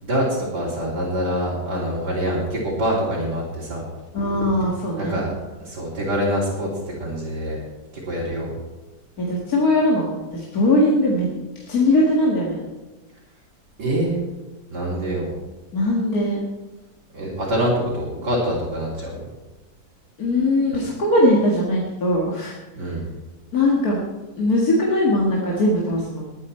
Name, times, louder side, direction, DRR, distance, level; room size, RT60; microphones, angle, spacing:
voice 1, 0.0-3.8 5.0-5.3 5.7-7.6 8.1-8.5 13.8-14.1 14.7-15.3 17.1-19.3 22.8-23.0, equal, 90° right, -8 dB, 4.0 m, -25 dB
voice 2, 4.1-5.2 9.2-11.3 11.6-12.6 15.7-16.4 20.2-22.5 23.5-24.0 24.4-26.2, left 1 dB, 60° left, -3 dB, 2.3 m, -20 dB
20.5 x 9.4 x 4.4 m, 1.1 s
omnidirectional pair, 1.8 m